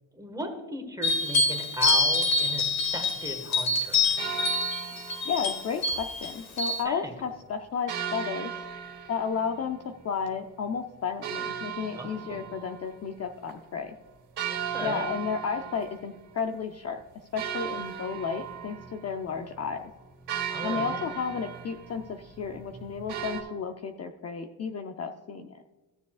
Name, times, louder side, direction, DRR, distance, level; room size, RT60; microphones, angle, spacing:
voice 1, 0.1-2.7 2.9-4.1 6.8-7.1 11.9-12.4 14.5-15.1 20.5-21.0, right 1 dB, 10° right, 3 dB, 1.6 m, -37 dB
sound 1, 1.0-6.8, left 3 dB, 50° left, 2.2 m, -26 dB
sound 2, 4.2-5.8 7.9-10.3 11.2-13.2 13.5-13.6 14.4-16.4 16.8-16.9 17.4-23.4, right 8 dB, 60° right, 2.2 m, -37 dB
voice 2, 5.2-8.6 9.1-9.8 10.0-13.9 14.8-17.0 17.3-19.8 20.6-25.5, left 6 dB, 35° left, 5 dB, 0.6 m, -32 dB
15.5 x 6.9 x 2.4 m, 1.2 s
cardioid pair, 135°, 44 cm